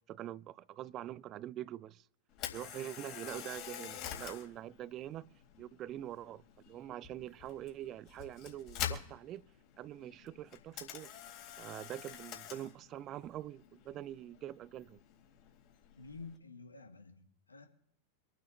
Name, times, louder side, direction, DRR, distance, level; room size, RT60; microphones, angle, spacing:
voice 1, 0.0-2.1 2.5-5.3 5.6-9.5 9.8-11.1 11.6-15.0, right 12 dB, 35° right, 0.4 m, -44 dB
Camera, 2.3-16.4, left 10 dB, 40° left, 3.7 m, -47 dB
voice 2, 16.0-17.7, left 4 dB, 80° left, 1.8 m, -50 dB
26.0 x 9.2 x 3.2 m
figure-of-eight pair, 90°, 0 cm